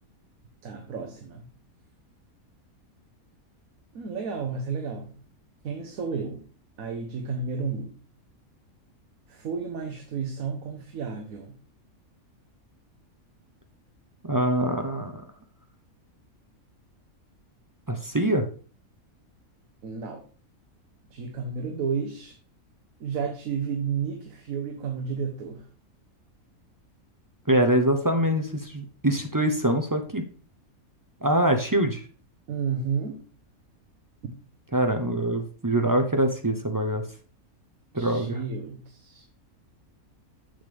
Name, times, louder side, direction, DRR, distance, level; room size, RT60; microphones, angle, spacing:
voice 1, 0.6-1.5 3.9-5.2 5.6-6.4 6.8-7.9 9.3-11.5 19.8-20.2 21.1-22.4 23.0-25.7 32.5-33.2 37.9-39.3, right 5 dB, 75° right, 3 dB, 1.4 m, -32 dB
voice 2, 14.3-15.2 17.9-18.5 27.5-30.2 31.2-32.0 34.7-37.0 37.9-38.4, right 1 dB, 30° right, 5 dB, 0.4 m, -24 dB
7.3 x 6.9 x 3.4 m, 0.40 s
omnidirectional pair, 1.5 m